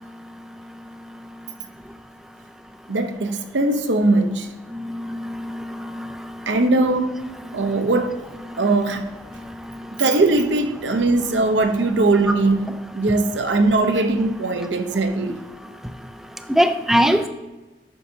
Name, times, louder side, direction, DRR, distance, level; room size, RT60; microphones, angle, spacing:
voice 1, 2.9-4.5 6.5-7.2 7.5-8.1 8.6-9.1 10.0-15.4, right 2 dB, 85° right, 7 dB, 0.7 m, -20 dB
voice 2, 4.9-5.6 6.0-6.1 16.5-17.3, equal, ahead, 8 dB, 0.3 m, -20 dB
9.1 x 6.2 x 2.7 m, 1.1 s
head